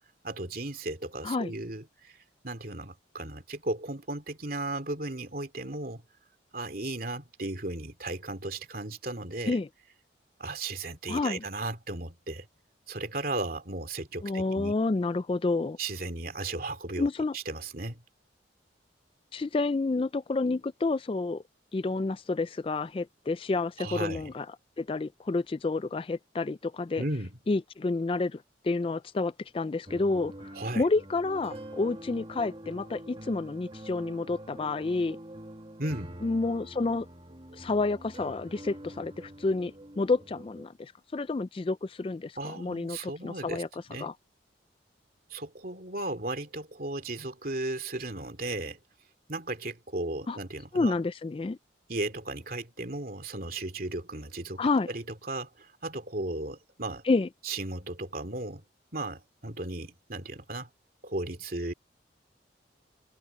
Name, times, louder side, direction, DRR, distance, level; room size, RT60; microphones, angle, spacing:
voice 1, 0.2-2.2 2.4-6.0 6.5-9.6 10.4-12.5 12.9-14.7 15.8-18.0 23.8-24.3 27.0-27.4 30.5-30.8 35.8-36.2 42.4-44.1 45.3-48.8 49.3-50.9 51.9-57.0 57.4-58.6 58.9-60.7 61.0-61.7, right 2 dB, 50° right, 2.8 m, -35 dB
voice 2, 11.1-11.4 14.2-15.8 17.0-17.3 19.3-21.4 21.7-24.5 24.8-27.0 27.5-30.3 30.8-35.2 36.2-37.1 37.6-43.7 44.0-44.1 50.3-50.4 50.7-51.6 54.6-54.9 57.1-57.3, left 3 dB, 30° left, 0.3 m, -29 dB
sound 1, 29.9-40.7, right 1 dB, 30° right, 2.3 m, -45 dB
head